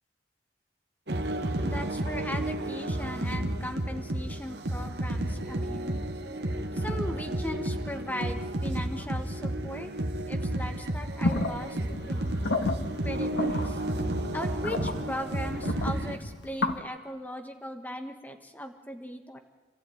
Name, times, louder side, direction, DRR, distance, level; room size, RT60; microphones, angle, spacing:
sound 1, 1.1-16.2, right 1 dB, 65° right, 1.5 m, -32 dB
voice 1, 1.6-6.0 6.7-9.9 10.3-11.8 12.1-12.4 13.0-13.8 14.3-19.4, equal, 10° left, 5 dB, 1.5 m, -38 dB
sound 2, 11.2-16.7, left 2 dB, 85° left, 1.7 m, -32 dB
27.0 x 14.5 x 9.4 m, 1.3 s
head